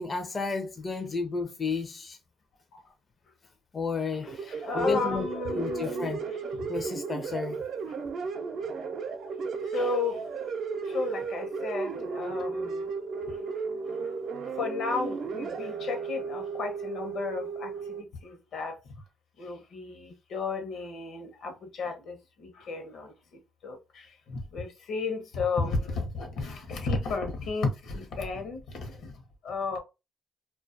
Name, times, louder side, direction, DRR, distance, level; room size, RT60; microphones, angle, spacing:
voice 1, 0.0-2.2 3.7-5.3 5.5-6.2 6.7-7.6, left 4 dB, 35° left, 0.4 m, -32 dB
sound 1, 4.3-18.0, right 5 dB, 70° right, 0.5 m, -34 dB
voice 2, 4.5-6.1 9.7-10.4 10.8-12.8 13.3-13.4 14.1-14.2 14.4-18.8 19.4-29.8, left 4 dB, 70° left, 0.7 m, -33 dB
2.3 x 2.2 x 2.5 m
cardioid pair, 90°, 0 cm